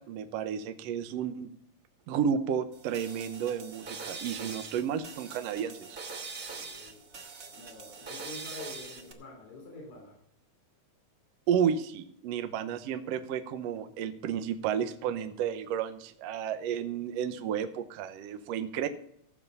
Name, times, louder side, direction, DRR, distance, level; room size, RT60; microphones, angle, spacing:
voice 1, 0.0-1.5 2.1-6.0 11.5-18.9, right 8 dB, 70° right, 9 dB, 1.7 m, -32 dB
sound 1, 2.7-9.1, right 4 dB, 45° right, 1.0 m, -43 dB
voice 2, 6.6-7.0 7.5-10.2, left 2 dB, 75° left, -1 dB, 5.4 m, -46 dB
15.0 x 7.3 x 5.5 m, 0.69 s
omnidirectional pair, 3.4 m